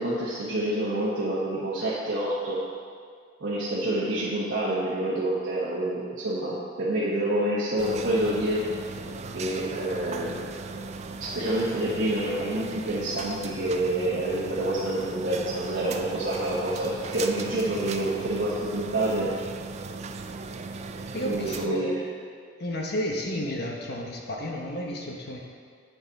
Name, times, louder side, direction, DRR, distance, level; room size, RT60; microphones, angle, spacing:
voice 1, 0.0-2.6 3.4-8.7 9.3-10.4 11.2-19.3 21.2-21.9, right 1 dB, 90° right, -8 dB, 1.3 m, -27 dB
sound 1, 7.8-21.7, right 4 dB, 35° right, 0.3 m, -37 dB
voice 2, 21.1-22.0 22.6-25.4, equal, 55° left, 0 dB, 0.9 m, -31 dB
8.6 x 7.2 x 4.1 m, 2.1 s
head